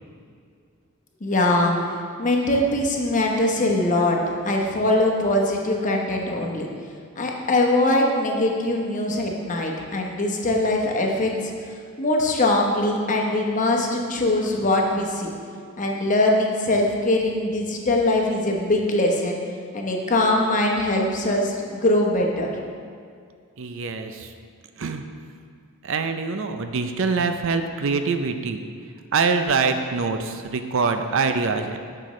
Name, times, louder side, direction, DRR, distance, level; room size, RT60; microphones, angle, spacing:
voice 1, 1.2-4.2 4.4-6.7 7.2-15.3 15.8-19.4 19.7-22.5, left 1 dB, 35° left, 0 dB, 0.9 m, -22 dB
voice 2, 23.6-24.3 24.8-25.0 25.8-28.6 29.1-31.8, right 4 dB, 65° right, 7 dB, 0.5 m, -24 dB
9.8 x 6.7 x 3.2 m, 2.2 s
head